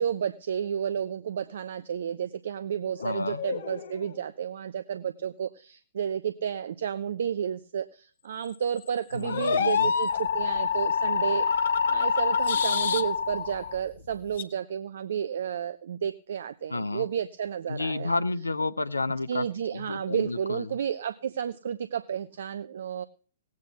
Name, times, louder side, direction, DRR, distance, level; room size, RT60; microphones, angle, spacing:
voice 1, 0.0-18.2 19.3-23.0, right 8 dB, 55° right, 13 dB, 0.6 m, -32 dB
voice 2, 3.0-3.4 9.1-9.9 16.7-17.1 17.7-19.5 19.7-20.8, left 3 dB, 80° left, 13 dB, 0.7 m, -31 dB
sound 1, 3.0-4.2 8.5-14.4, left 6 dB, 55° left, 1.1 m, -27 dB
17.5 x 8.5 x 6.1 m, 0.41 s
figure-of-eight pair, 115°, 0 cm